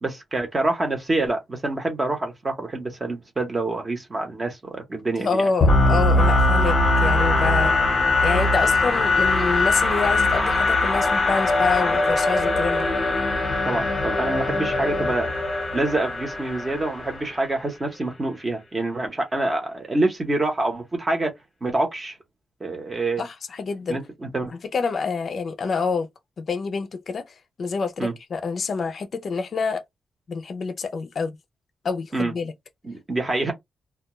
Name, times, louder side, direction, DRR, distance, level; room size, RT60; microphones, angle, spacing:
voice 1, 0.0-5.5 13.6-15.3 15.7-21.3 21.6-22.2 22.6-23.2 23.9-24.5 28.0-28.1 32.1-32.3 32.8-33.5, right 2 dB, 25° right, 0.8 m, -26 dB
voice 2, 5.2-7.7 8.2-12.9 23.2-24.0 24.5-26.1 26.4-29.8 30.3-31.4 31.8-32.5, left 5 dB, 45° left, 0.4 m, -27 dB
sound 1, 5.6-17.4, left 2 dB, 25° left, 0.8 m, -21 dB
2.2 x 2.1 x 2.9 m
wide cardioid pair, 170°, 0 cm